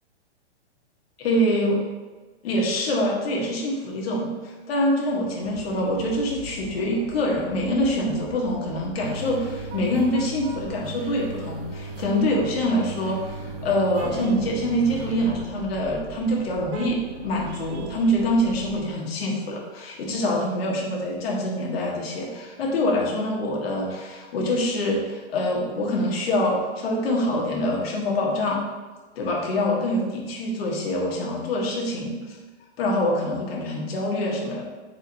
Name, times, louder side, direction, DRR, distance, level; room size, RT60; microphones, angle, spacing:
voice 1, 1.2-1.8 2.4-28.6 29.2-32.4 32.8-34.6, left 1 dB, 60° left, -2 dB, 1.3 m, -25 dB
sound 1, 5.4-18.9, right 6 dB, 85° right, 0.6 m, -41 dB
sound 2, 9.0-15.3, right 2 dB, 35° right, 0.5 m, -38 dB
4.3 x 4.1 x 2.8 m, 1.3 s
hypercardioid pair, 155°, 34 cm